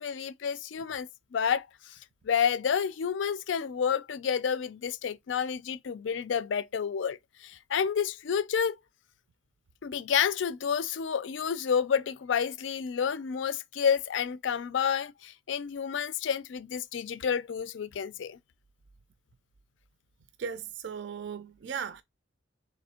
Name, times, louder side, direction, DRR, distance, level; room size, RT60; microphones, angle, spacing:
voice 1, 0.0-2.0 2.2-8.8 9.8-18.4, left 7 dB, 70° left, 0.4 m, -30 dB
voice 2, 20.4-22.0, right 6 dB, 65° right, 0.4 m, -37 dB
3.5 x 3.0 x 4.2 m
head